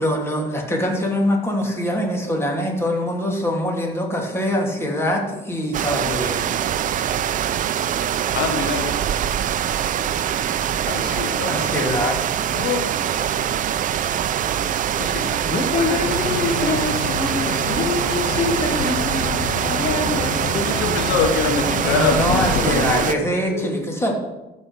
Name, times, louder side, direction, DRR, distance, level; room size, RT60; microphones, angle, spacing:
voice 1, 0.0-6.5 11.5-12.2 21.7-24.1, equal, 15° left, 0 dB, 2.8 m, -23 dB
sound 1, 5.7-23.1, right 10 dB, 50° right, 0.6 m, -23 dB
voice 2, 8.3-9.1 10.8-11.7 12.5-12.8 13.2-13.3 15.0-15.5 15.7-16.3 20.6-23.2 23.5-23.8, left 5 dB, 85° left, 5 dB, 1.4 m, -25 dB
voice 3, 15.4-21.0, left 3 dB, 35° left, 1 dB, 1.7 m, -26 dB
sound 2, 16.0-22.9, left 7 dB, 65° left, 0.9 m, -28 dB
14.0 x 5.5 x 6.6 m, 1.0 s
cardioid pair, 110°, 17 cm